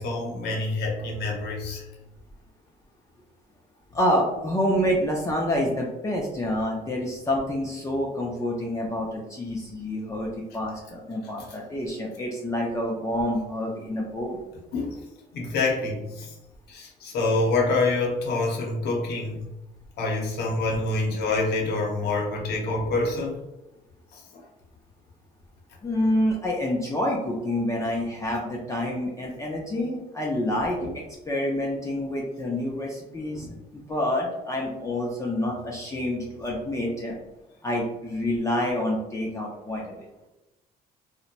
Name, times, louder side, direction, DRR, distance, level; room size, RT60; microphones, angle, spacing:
voice 1, 0.0-1.9 14.7-15.0 15.3-16.3 16.7-19.4 20.0-23.4 24.1-24.2 30.8-30.9 33.3-33.5, left 3 dB, 70° left, -1 dB, 0.8 m, -26 dB
voice 2, 3.9-14.4 25.8-30.8 31.3-33.5 33.7-37.2 37.6-40.0, left 1 dB, 20° left, -2 dB, 0.4 m, -27 dB
2.8 x 2.1 x 2.5 m, 0.96 s
cardioid pair, 110°, 17 cm